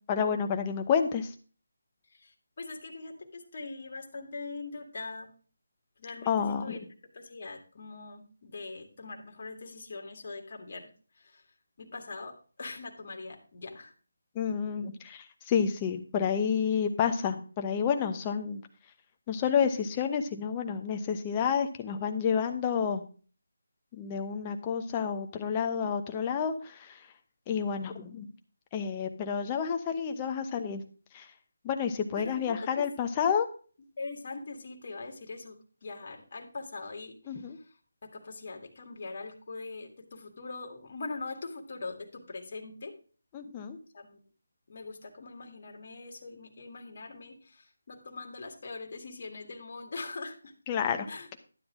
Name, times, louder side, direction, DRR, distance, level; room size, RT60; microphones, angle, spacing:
voice 1, 0.1-1.3 6.3-6.8 14.3-18.6 19.3-23.0 23.9-27.0 27.5-28.3 28.7-30.8 31.1-31.3 31.6-33.5 37.3-37.6 43.3-43.8 50.7-51.1, left 7 dB, 15° left, 6 dB, 0.8 m, -29 dB
voice 2, 2.1-5.3 6.0-6.8 7.1-10.9 11.2-11.4 11.8-13.9 32.2-32.9 34.0-37.7 38.0-42.9 43.9-44.2 44.7-50.5 51.1-51.3, left 3 dB, 40° left, 2 dB, 1.9 m, -42 dB
12.0 x 7.9 x 3.7 m, 0.39 s
figure-of-eight pair, 165°, 0 cm